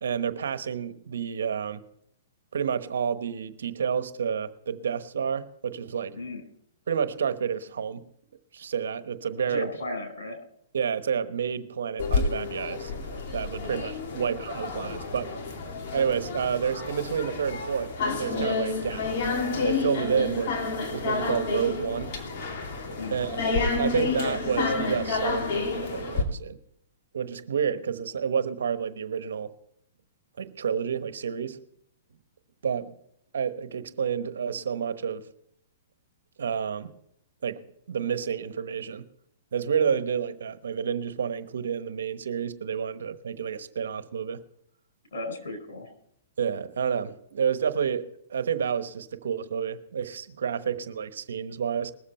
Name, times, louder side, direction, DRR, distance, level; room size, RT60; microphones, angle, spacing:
voice 1, 0.0-1.8 2.5-6.2 6.9-8.0 8.5-9.7 10.7-12.9 13.3-15.3 15.9-17.9 18.2-19.0 19.6-20.6 20.9-22.2 23.1-26.6 27.1-29.5 30.4-31.6 32.6-32.9 33.3-35.3 36.4-36.9 37.4-37.6 37.9-39.1 39.5-44.4 46.4-51.9, right 7 dB, 80° right, 12 dB, 1.1 m, -29 dB
voice 2, 9.5-10.4 13.6-13.8 14.1-14.2 23.0-23.2 45.1-45.9, left 2 dB, 80° left, 5 dB, 4.9 m, -35 dB
sound 1, 12.0-26.2, left 4 dB, 50° left, 2.7 m, -30 dB
20.5 x 7.5 x 4.4 m, 0.74 s
hypercardioid pair, 140°, 0 cm